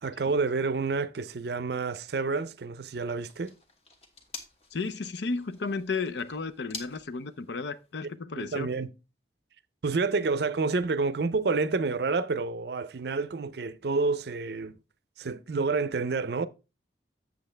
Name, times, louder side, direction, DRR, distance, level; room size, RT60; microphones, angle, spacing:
voice 1, 0.0-3.5 8.0-8.9 9.8-14.8 15.2-16.5, right 4 dB, 60° right, 0.5 m, -29 dB
sound 1, 3.1-8.1, left 3 dB, 30° left, 1.2 m, -48 dB
voice 2, 4.7-8.7, left 4 dB, 70° left, 0.6 m, -33 dB
7.7 x 7.2 x 3.3 m
head